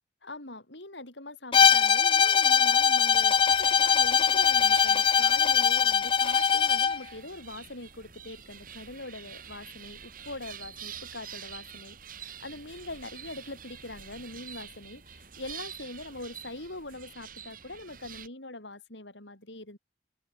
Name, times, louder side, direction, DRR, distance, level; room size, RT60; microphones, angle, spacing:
voice 1, 0.2-19.8, left 2 dB, 80° left, 6.8 m, -43 dB
Bowed string instrument, 1.5-7.0, left 7 dB, 30° left, 0.4 m, -22 dB
sound 1, 3.1-18.3, right 8 dB, 50° right, 6.5 m, -46 dB
open air
head